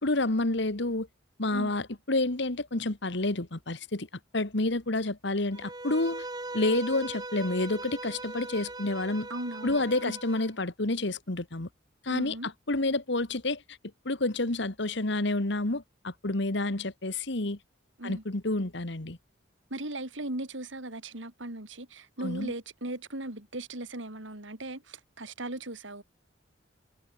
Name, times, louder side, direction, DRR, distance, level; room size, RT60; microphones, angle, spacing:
voice 1, 0.0-1.1 1.4-4.1 4.3-6.3 6.5-9.3 9.6-11.7 12.0-13.6 14.1-17.6 18.0-19.2 22.2-22.5, left 2 dB, 60° left, 1.7 m, -29 dB
Bowed string instrument, 5.5-10.5, right 2 dB, 20° right, 3.9 m, -40 dB
voice 2, 9.3-10.2 12.1-12.5 18.0-18.2 19.7-26.0, right 1 dB, 75° right, 3.9 m, -38 dB
head